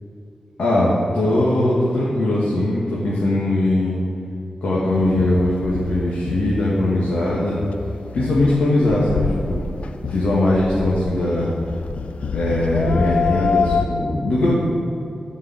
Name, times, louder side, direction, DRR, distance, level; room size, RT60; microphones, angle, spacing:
voice 1, 0.6-4.0 4.6-7.6 8.1-9.6 10.1-11.5 12.3-14.6, left 1 dB, 85° left, -7 dB, 2.0 m, -20 dB
sound 1, 4.9-13.9, left 5 dB, 70° left, 0.6 m, -27 dB
12.0 x 5.3 x 8.1 m, 2.7 s
wide cardioid pair, 120°, 2 cm